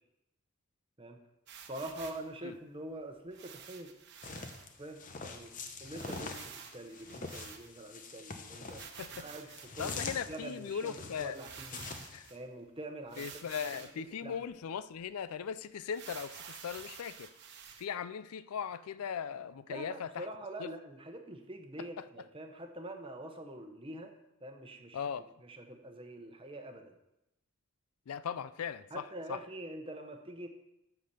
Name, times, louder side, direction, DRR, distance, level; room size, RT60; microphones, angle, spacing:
sound 1, 1.5-2.3 3.3-4.6 5.1-5.2 5.4-5.5 5.9-8.0 8.6-10.3 11.0-11.1 11.3-12.4 13.1-14.0 14.5-14.6 15.0-15.1 15.9-17.8, right 7 dB, 50° right, 1.0 m, -50 dB
voice 1, 1.7-3.9 4.8-5.5 5.8-8.8 9.1-9.5 9.7-10.0 10.3-11.8 12.3-13.3 14.2-14.4 19.7-24.1 24.4-25.0 25.4-27.0 28.9-30.5, right 1 dB, 25° right, 0.9 m, -45 dB
sound 2, 4.2-12.3, left 4 dB, 35° left, 0.8 m, -44 dB
voice 2, 9.8-11.4 12.1-12.3 13.2-17.3 17.8-20.3 20.6-20.7 21.8-22.1 24.9-25.3 28.1-29.4, left 7 dB, 80° left, 0.4 m, -39 dB
8.3 x 5.9 x 6.8 m
head